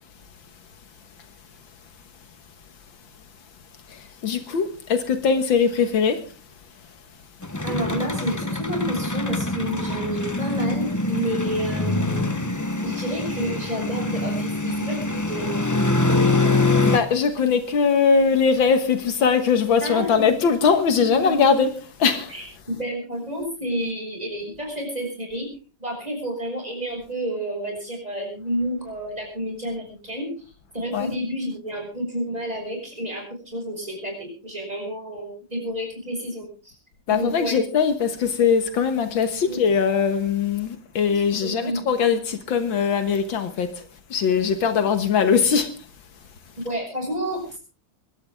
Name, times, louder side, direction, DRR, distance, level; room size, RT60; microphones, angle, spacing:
voice 1, 3.9-6.2 16.9-22.3 30.9-31.1 37.1-43.9 44.1-45.7, left 6 dB, 75° left, 2.1 m, -21 dB
sound 1, 7.4-17.0, left 2 dB, 30° left, 0.3 m, -24 dB
voice 2, 7.6-12.3 12.8-15.0 15.3-15.8 16.1-16.8 19.8-20.4 21.0-21.5 22.3-25.5 25.8-30.3 30.7-36.8 37.1-37.6 39.5-39.6 41.1-41.8 46.6-47.6, equal, 20° right, 6.6 m, -30 dB
24.5 x 12.5 x 3.6 m
omnidirectional pair, 2.2 m